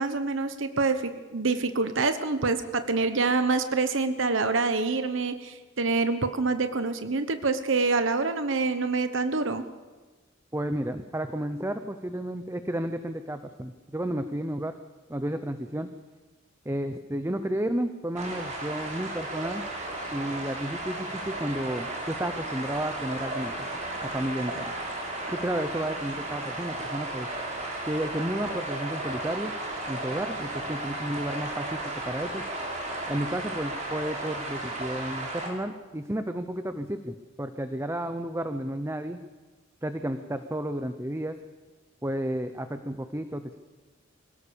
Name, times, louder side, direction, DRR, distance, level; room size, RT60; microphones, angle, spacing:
voice 1, 0.0-9.6, right 3 dB, 65° right, 9 dB, 1.1 m, -26 dB
voice 2, 10.5-14.7 15.1-15.9 16.6-19.6 20.1-23.7 24.0-24.7 25.3-27.3 27.8-29.5 29.9-32.4 33.1-39.2 39.8-41.4 42.0-43.6, right 1 dB, 15° right, 9 dB, 0.8 m, -32 dB
sound 1, 18.2-35.5, right 2 dB, 35° right, 4.9 m, -34 dB
25.0 x 17.5 x 7.0 m, 1.3 s
head